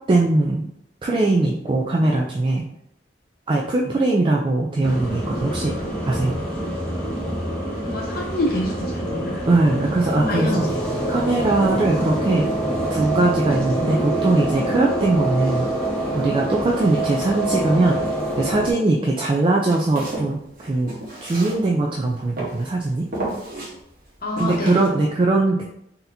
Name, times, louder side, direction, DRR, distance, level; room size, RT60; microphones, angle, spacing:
voice 1, 0.1-0.7 1.0-2.6 3.5-5.8 6.1-6.4 9.4-10.7 11.1-12.5 12.9-15.7 16.1-18.0 18.4-20.9 21.2-23.1 24.4-25.7, right 2 dB, 30° right, -1 dB, 0.3 m, -20 dB
sound 1, 4.8-18.7, right 1 dB, 5° left, 0.9 m, -26 dB
voice 2, 7.8-9.4 10.2-10.5 24.2-24.8, left 1 dB, 55° left, -2 dB, 0.9 m, -26 dB
Walk footsteps, 19.6-22.0 22.4-22.7 23.1-23.7 24.4-24.9, right 2 dB, 50° right, 1.0 m, -32 dB
4.0 x 2.8 x 2.6 m, 0.77 s
head